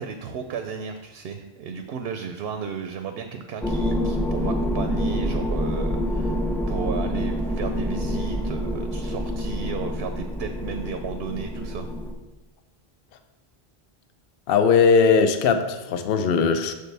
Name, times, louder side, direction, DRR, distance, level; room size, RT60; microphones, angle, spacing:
voice 1, 0.0-6.4 6.7-11.9, right 6 dB, 75° right, 7 dB, 0.8 m, -34 dB
sound 1, 3.6-12.1, equal, 5° left, 0.3 m, -27 dB
voice 2, 14.5-16.7, left 5 dB, 70° left, 8 dB, 0.7 m, -19 dB
6.9 x 6.6 x 3.3 m, 1.1 s
omnidirectional pair, 1.0 m